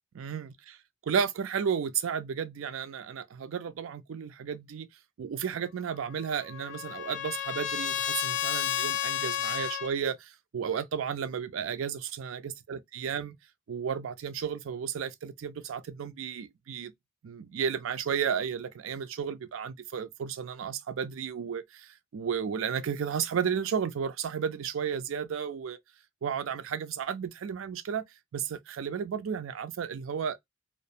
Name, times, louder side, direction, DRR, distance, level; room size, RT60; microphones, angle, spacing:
voice 1, 0.2-0.8 1.1-4.9 5.2-13.3 13.7-16.9 17.2-25.8 26.2-28.0 28.3-30.4, right 7 dB, 85° right, 0.4 m, -33 dB
Trumpet, 6.0-9.9, left 11 dB, 65° left, 0.3 m, -32 dB
2.4 x 2.0 x 2.6 m
head